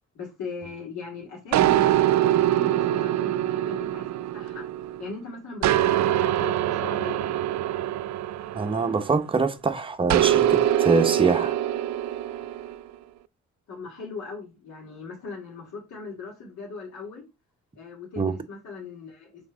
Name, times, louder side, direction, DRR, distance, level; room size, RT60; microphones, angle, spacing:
voice 1, 0.1-4.6 5.0-7.4 13.7-17.3 17.7-19.5, left 4 dB, 70° left, 2.5 m, -39 dB
sound 1, 1.5-5.1 5.6-9.3 10.1-12.8, right 12 dB, 65° right, 0.5 m, -24 dB
voice 2, 8.5-11.5 18.2-18.3, right 4 dB, 15° right, 0.8 m, -24 dB
5.8 x 4.3 x 3.9 m
cardioid pair, 90°, 30 cm